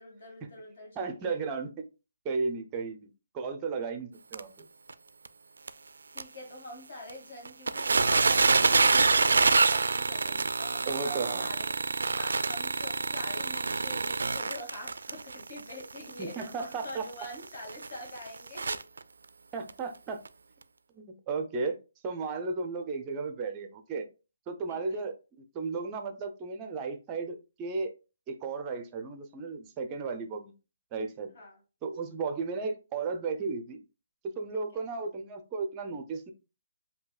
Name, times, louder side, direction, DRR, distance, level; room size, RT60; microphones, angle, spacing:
voice 1, 0.0-1.4 6.1-18.8 24.7-25.0 31.3-31.6, left 1 dB, 50° left, 1 dB, 2.1 m, -45 dB
voice 2, 1.0-1.8 2.2-4.7 10.8-11.5 16.2-17.0 19.5-20.2 20.9-21.8 22.0-24.1 24.5-25.1 25.5-27.9 28.3-30.5 30.9-31.4 31.8-33.8 34.4-36.3, right 4 dB, 20° right, 6 dB, 0.5 m, -34 dB
sound 1, 4.3-4.4 4.9-5.0 5.2-5.3 5.7-5.8 6.2-6.3 7.1-7.2 7.5-19.0 19.7-19.8 20.3-20.4, right 4 dB, 85° right, 0.3 m, -26 dB
7.1 x 2.7 x 2.3 m, 0.31 s
hypercardioid pair, 165°, 0 cm